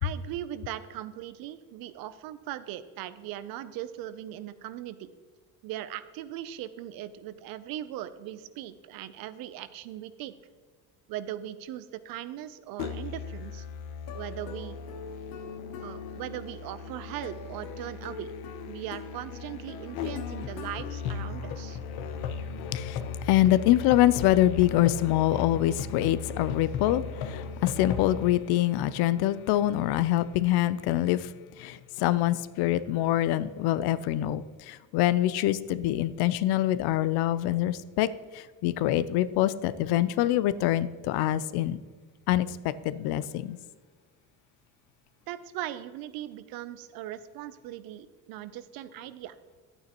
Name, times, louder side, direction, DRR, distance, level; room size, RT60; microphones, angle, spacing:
voice 1, 0.0-5.1 5.6-10.3 11.1-13.6 14.1-14.8 15.8-18.3 18.7-21.8 45.3-49.4, right 12 dB, 65° right, 14 dB, 0.6 m, -39 dB
Musical instrument, 12.8-28.3, left 6 dB, 70° left, 0.9 m, -37 dB
voice 2, 22.6-31.3 31.6-38.1 38.3-41.8 42.3-43.6, left 13 dB, 90° left, 16 dB, 0.6 m, -25 dB
11.0 x 9.0 x 3.0 m, 1.5 s
cardioid pair, 175°, 37 cm